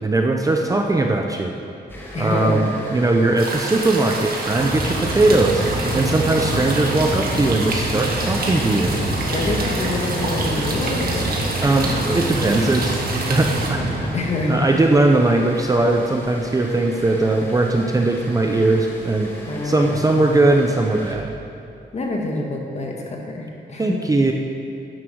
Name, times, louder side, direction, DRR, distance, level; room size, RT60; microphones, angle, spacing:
voice 1, 0.0-1.5 2.2-5.6 5.9-9.0 11.6-13.0 13.3-14.2 14.5-19.3 19.6-21.3 23.8-24.3, right 2 dB, 20° right, 2 dB, 0.6 m, -19 dB
sound 1, 1.9-21.1, equal, 10° left, 1.5 m, -37 dB
voice 2, 2.1-2.7 9.0-11.4 14.1-14.6 19.4-20.4 21.9-24.0, left 2 dB, 35° left, 0 dB, 1.7 m, -26 dB
sound 2, 3.4-13.7, right 2 dB, 55° right, 1.9 m, -28 dB
Mechanical fan, 4.3-14.7, right 1 dB, 75° right, 2.3 m, -27 dB
11.0 x 9.9 x 6.3 m, 2.6 s
wide cardioid pair, 180°, 19 cm